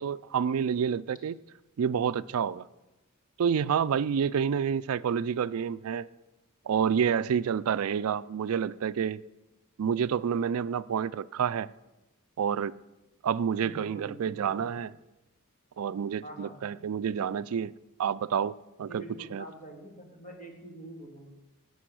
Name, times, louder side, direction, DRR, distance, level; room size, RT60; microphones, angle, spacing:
voice 1, 0.0-1.3 1.8-2.7 3.4-6.1 6.7-9.2 9.8-11.7 12.4-12.7 13.2-14.9 15.8-17.7 18.0-18.5 18.8-19.0 19.3-19.5, right 7 dB, 75° right, 0.4 m, -28 dB
voice 2, 13.6-14.7 16.2-16.6 18.8-21.3, right 2 dB, 35° left, 2.4 m, -45 dB
16.0 x 5.5 x 7.7 m
head